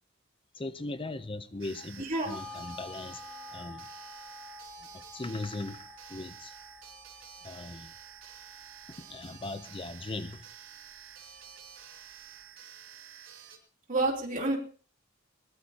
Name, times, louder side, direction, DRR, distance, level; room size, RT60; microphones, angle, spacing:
voice 1, 0.5-3.9 4.9-6.5 7.4-7.9 9.0-10.5, left 2 dB, 25° left, 0.6 m, -39 dB
sound 1, 1.6-13.6, right 9 dB, 80° right, 3.3 m, -50 dB
voice 2, 2.0-2.3 13.9-14.5, right 2 dB, 40° right, 3.5 m, -28 dB
sound 2, 2.3-11.0 11.4-11.5, left 2 dB, 10° right, 7.0 m, -49 dB
21.5 x 20.0 x 2.9 m
head